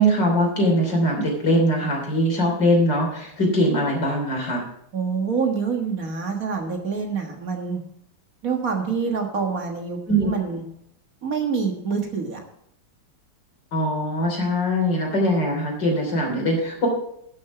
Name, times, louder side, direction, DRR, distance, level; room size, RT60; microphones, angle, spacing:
voice 1, 0.0-4.6 10.1-10.3 13.7-16.9, equal, 70° left, 0 dB, 3.8 m, -21 dB
voice 2, 4.9-7.8 8.4-10.6 11.2-12.4, right 5 dB, 50° right, 3 dB, 1.8 m, -26 dB
11.5 x 6.6 x 5.9 m, 0.72 s
omnidirectional pair, 2.0 m